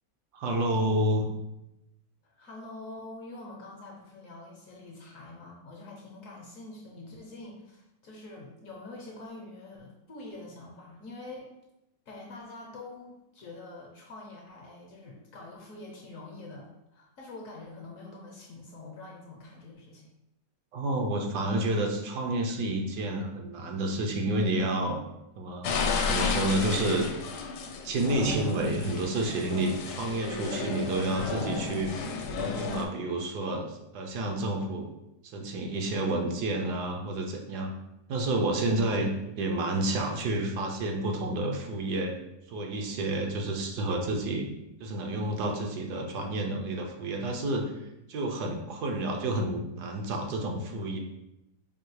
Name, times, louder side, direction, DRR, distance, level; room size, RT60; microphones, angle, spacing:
voice 1, 0.3-1.3 20.7-25.0 25.4-25.7 26.0-27.1 27.8-31.9 32.4-34.9 35.3-37.7 38.1-39.1 39.4-42.1 42.5-44.5 44.8-51.0, right 1 dB, 75° right, 2 dB, 1.2 m, -30 dB
voice 2, 2.2-11.5 12.1-20.1, left 2 dB, 60° left, -1 dB, 1.0 m, -45 dB
sound 1, 25.6-32.8, left 4 dB, 80° left, 1.2 m, -32 dB
4.7 x 2.7 x 3.1 m, 0.88 s
omnidirectional pair, 1.8 m